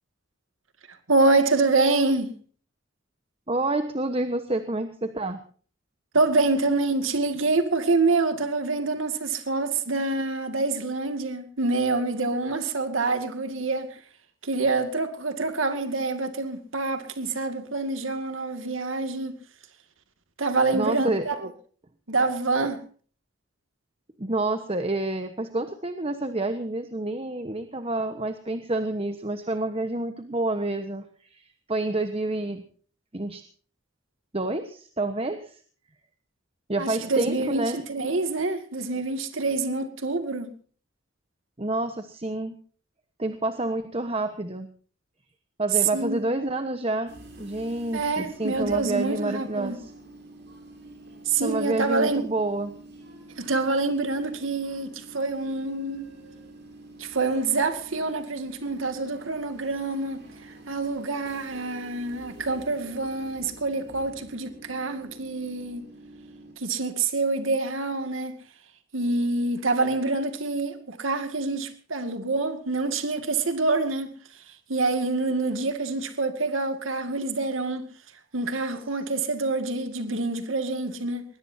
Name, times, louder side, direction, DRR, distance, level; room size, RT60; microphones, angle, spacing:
voice 1, 1.1-2.4 6.1-14.0 14.4-19.4 20.4-21.3 22.1-22.8 36.8-40.5 45.9-46.2 47.9-49.8 51.3-52.3 53.4-56.1 57.0-65.9 66.6-68.4 68.9-77.9 78.3-81.2, right 3 dB, 90° right, 2.2 m, -26 dB
voice 2, 3.5-5.4 20.7-21.2 24.2-32.6 33.1-33.4 34.3-35.6 36.7-37.8 41.6-42.5 43.2-44.7 45.6-49.9 51.4-52.8, right 2 dB, 30° right, 1.2 m, -28 dB
Train / Subway metro underground, 47.1-66.5, right 2 dB, 60° right, 7.3 m, -47 dB
21.5 x 20.5 x 2.8 m
head